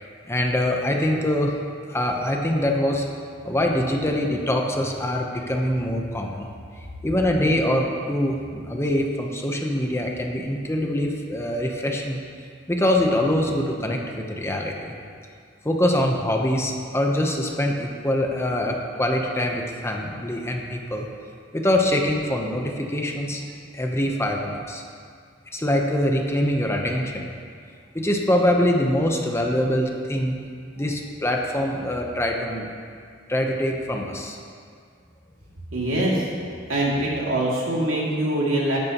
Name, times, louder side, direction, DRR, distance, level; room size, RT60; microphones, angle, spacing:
voice 1, 0.3-1.6 1.9-3.1 3.4-6.5 6.8-12.2 12.7-14.9 15.6-21.1 21.5-23.4 23.7-24.8 25.5-27.3 27.9-30.4 30.8-32.7 33.3-34.4, left 1 dB, 15° left, 1 dB, 0.9 m, -24 dB
voice 2, 35.7-36.3 36.7-38.8, right 1 dB, 85° right, -5 dB, 2.6 m, -23 dB
13.5 x 11.0 x 3.0 m, 2.2 s
head